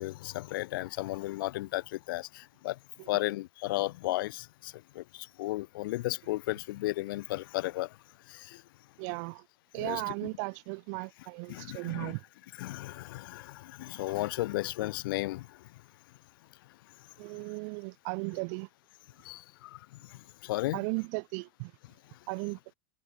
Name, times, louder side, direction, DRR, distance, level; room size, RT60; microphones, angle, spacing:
voice 1, 0.0-2.7 3.1-7.9 8.3-8.6 9.8-10.0 11.5-12.1 12.6-15.5 19.2-19.4 20.4-20.8, left 18 dB, 70° left, 4.7 m, -34 dB
voice 2, 9.0-9.4 9.7-12.2 17.2-18.7 20.7-21.7 22.3-22.8, right 39 dB, 50° right, 7.0 m, -36 dB
supercardioid pair, 165°, 12 cm